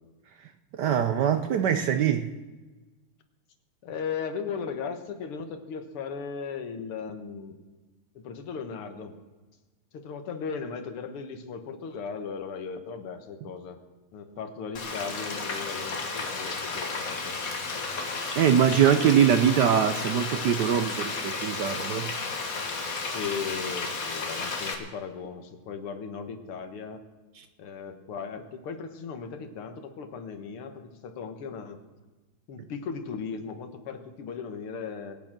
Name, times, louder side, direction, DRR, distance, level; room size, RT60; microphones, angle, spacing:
voice 1, 0.7-2.3 18.3-22.1 27.4-27.5, right 8 dB, 65° right, 1.1 m, -23 dB
voice 2, 3.8-7.6 8.2-9.1 9.9-13.8 14.1-17.4 23.0-27.0 27.6-31.8 32.5-35.2, left 5 dB, 80° left, 2.2 m, -37 dB
Frying (food), 14.7-24.7, left 4 dB, 45° left, 1.8 m, -33 dB
21.0 x 9.0 x 6.0 m
omnidirectional pair, 2.4 m